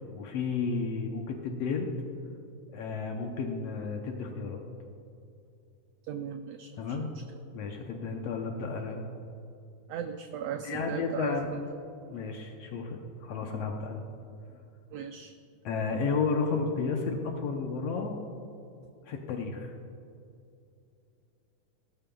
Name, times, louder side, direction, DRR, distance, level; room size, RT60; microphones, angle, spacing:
voice 1, 0.1-1.9 2.7-4.6 6.8-7.1 7.5-9.0 10.6-11.6 12.1-14.0 15.6-18.2 19.0-19.7, left 4 dB, 70° left, 3 dB, 1.6 m, -32 dB
voice 2, 6.1-7.1 9.9-11.6 14.9-15.3, right 7 dB, 90° right, 6 dB, 1.4 m, -38 dB
17.5 x 12.5 x 2.3 m, 2.6 s
omnidirectional pair, 3.5 m